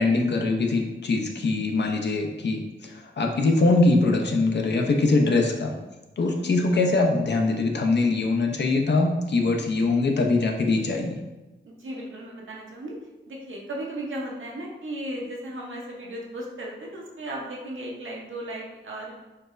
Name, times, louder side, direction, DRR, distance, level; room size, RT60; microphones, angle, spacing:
voice 1, 0.0-5.7 6.2-11.2, left 3 dB, 55° left, 2 dB, 0.5 m, -22 dB
voice 2, 6.2-6.5 11.7-12.9 13.3-19.1, right 1 dB, 70° right, -2 dB, 0.8 m, -36 dB
4.5 x 2.0 x 2.5 m, 1.1 s
cardioid pair, 50°, 21 cm